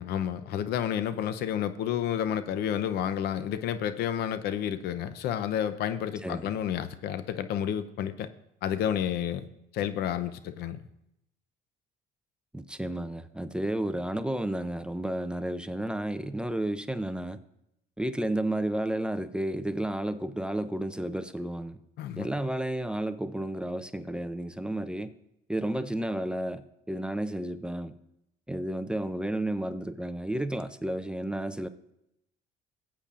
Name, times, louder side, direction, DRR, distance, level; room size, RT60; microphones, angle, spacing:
voice 1, 0.0-8.3 8.6-9.5 9.7-10.8 22.0-22.3, left 9 dB, 75° left, 13 dB, 0.7 m, -30 dB
voice 2, 6.2-6.6 12.5-17.4 18.0-21.8 22.2-25.1 25.5-27.9 28.5-31.7, right 1 dB, 5° right, 11 dB, 0.5 m, -32 dB
18.5 x 8.4 x 2.5 m, 0.81 s
cardioid pair, 110°, 17 cm